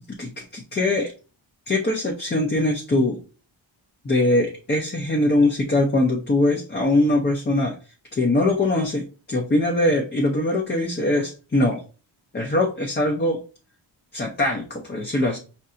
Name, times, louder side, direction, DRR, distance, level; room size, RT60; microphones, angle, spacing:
voice 1, 0.2-1.1 1.7-3.2 4.0-7.7 8.1-11.8 12.3-13.4 14.1-15.4, left 2 dB, 20° left, 1 dB, 0.5 m, -22 dB
5.5 x 2.6 x 2.5 m, 0.34 s
wide cardioid pair, 175°, 48 cm